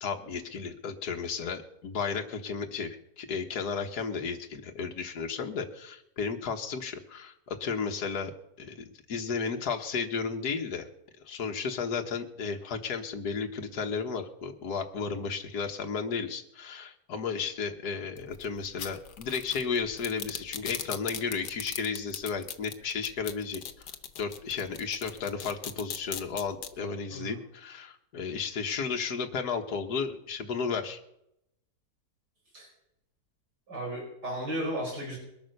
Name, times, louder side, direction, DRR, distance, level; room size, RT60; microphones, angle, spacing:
voice 1, 0.0-8.3 8.6-10.9 11.2-23.9 24.2-31.0, left 5 dB, 70° left, 3 dB, 1.8 m, -33 dB
sound 1, 18.2-26.7, left 8 dB, 90° left, 1.7 m, -38 dB
voice 2, 33.7-35.2, right 1 dB, 80° right, -2 dB, 6.1 m, -34 dB
22.0 x 8.9 x 6.6 m, 0.81 s
omnidirectional pair, 1.8 m